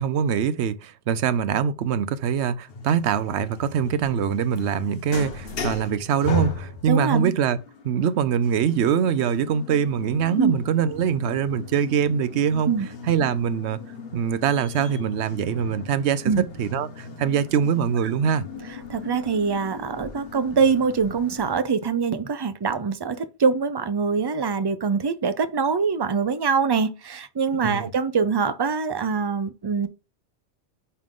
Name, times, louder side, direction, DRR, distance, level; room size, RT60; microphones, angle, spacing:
voice 1, 0.0-7.6 7.8-12.7 13.1-13.8 14.1-18.4 27.7-27.9, right 7 dB, 75° right, 0.9 m, -23 dB
sound 1, 2.7-21.5, left 3 dB, 55° left, 1.3 m, -37 dB
voice 2, 6.9-7.3 10.4-10.5 12.7-12.9 16.3-16.4 18.9-29.9, right 5 dB, 40° right, 0.3 m, -24 dB
9.9 x 3.7 x 3.7 m
omnidirectional pair, 1.2 m